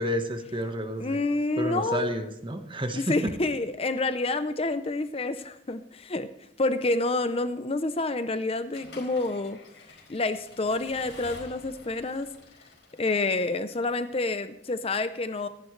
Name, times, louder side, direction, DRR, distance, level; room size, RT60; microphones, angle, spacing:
voice 1, 0.0-1.2 1.6-3.4, equal, 30° right, 6 dB, 1.3 m, -30 dB
voice 2, 1.0-2.1 2.9-6.3 6.6-9.6 10.1-12.3 13.0-15.5, left 2 dB, 35° left, 10 dB, 0.6 m, -28 dB
Accelerating revving vroom / Mechanisms, 8.7-13.6, left 2 dB, 80° left, 4.7 m, -49 dB
25.5 x 11.0 x 3.3 m, 0.87 s
head